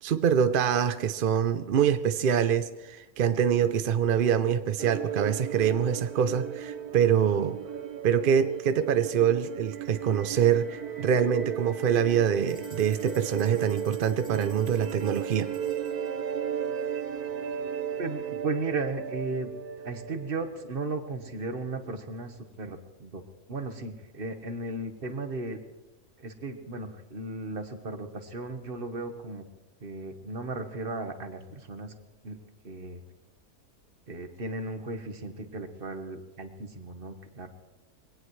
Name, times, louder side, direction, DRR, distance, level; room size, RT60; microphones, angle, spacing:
voice 1, 0.0-7.6 8.0-15.5, right 8 dB, 65° right, 11 dB, 0.5 m, -25 dB
sound 1, 4.8-21.2, right 8 dB, 80° right, 1.4 m, -35 dB
sound 2, 12.4-16.1, equal, 35° left, 2.9 m, -53 dB
voice 2, 18.0-19.5 19.8-23.2 23.5-25.6 26.2-29.5 29.8-31.9 32.2-32.4 32.6-33.0 34.1-37.5, right 3 dB, 40° right, 7 dB, 1.4 m, -35 dB
23.0 x 18.0 x 3.2 m, 1.1 s
omnidirectional pair, 1.6 m